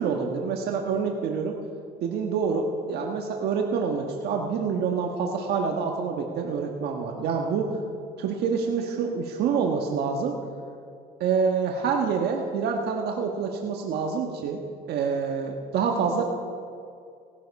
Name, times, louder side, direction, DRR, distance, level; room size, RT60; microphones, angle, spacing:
voice 1, 0.0-1.6 2.0-7.8 8.2-10.4 11.2-14.6 14.9-16.2, right 5 dB, 75° right, 2 dB, 1.4 m, -27 dB
18.0 x 13.0 x 5.4 m, 2.4 s
cardioid pair, 110°, 17 cm